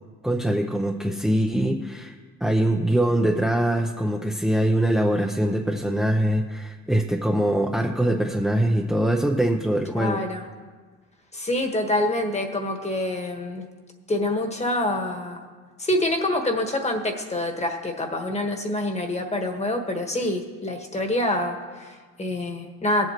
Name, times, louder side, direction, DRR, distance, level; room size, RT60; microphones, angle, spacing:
voice 1, 0.2-2.1 2.4-10.2, right 1 dB, ahead, 0 dB, 0.6 m, -23 dB
voice 2, 10.0-10.4 11.3-13.7 14.1-15.4 15.8-23.1, left 1 dB, 20° left, 3 dB, 1.4 m, -26 dB
18.0 x 7.8 x 3.0 m, 1.5 s
cardioid pair, 90°, 30 cm